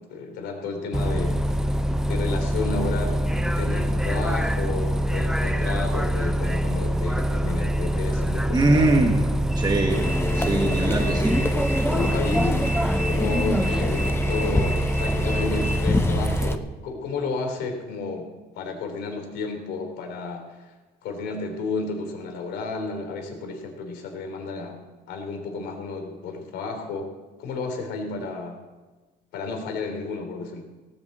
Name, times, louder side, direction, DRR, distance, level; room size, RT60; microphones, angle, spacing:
voice 1, 0.1-1.4 2.0-8.9 10.8-11.0 11.9-12.6 13.1-18.3 18.5-20.7 21.0-24.8 25.1-27.1 27.4-28.6 29.3-30.6, left 4 dB, 80° left, 3 dB, 3.4 m, -32 dB
Bus, 0.9-16.6, right 1 dB, 5° right, 0.6 m, -24 dB
voice 2, 8.5-9.2 9.6-10.0 10.4-11.3, right 2 dB, 25° right, 0 dB, 1.7 m, -21 dB
sound 1, 9.9-16.6, left 2 dB, 15° left, 1.0 m, -28 dB
17.5 x 7.2 x 7.8 m, 1.3 s
cardioid pair, 110°, 17 cm